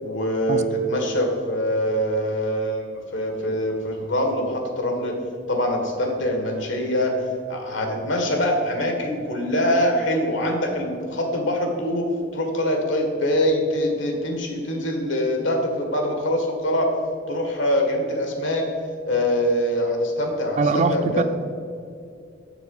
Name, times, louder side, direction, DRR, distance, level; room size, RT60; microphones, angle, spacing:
voice 1, 0.0-2.9 3.1-5.2 5.5-7.1 7.5-16.9 17.3-18.6 19.1-21.2, equal, 80° left, 2 dB, 1.7 m, -24 dB
voice 2, 20.6-21.2, right 4 dB, 35° right, 10 dB, 0.4 m, -22 dB
7.0 x 6.8 x 5.5 m, 2.4 s
head